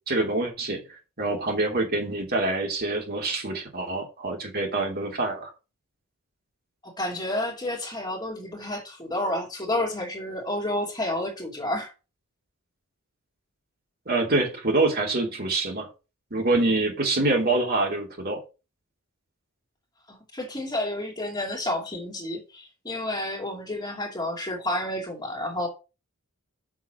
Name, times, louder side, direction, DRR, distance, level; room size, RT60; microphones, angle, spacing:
voice 1, 0.1-0.8 1.2-5.5 14.1-15.9 16.3-18.4, right 2 dB, 45° right, 3.1 m, -25 dB
voice 2, 6.8-11.9 20.1-25.7, left 1 dB, 20° left, 2.6 m, -30 dB
7.1 x 6.1 x 6.2 m
head